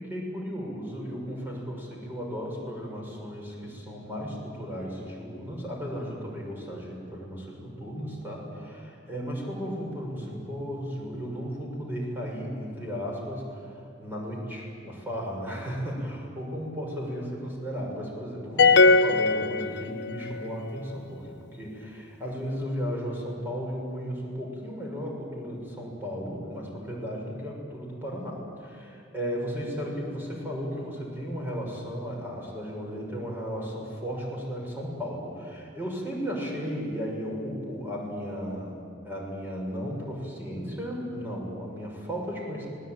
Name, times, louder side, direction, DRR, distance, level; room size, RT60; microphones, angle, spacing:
voice 1, 0.0-38.7 39.0-42.7, equal, 10° right, -2 dB, 6.1 m, -35 dB
sound 1, 18.6-20.3, left 3 dB, 60° left, 0.7 m, -19 dB
25.0 x 20.0 x 9.2 m, 2.4 s
head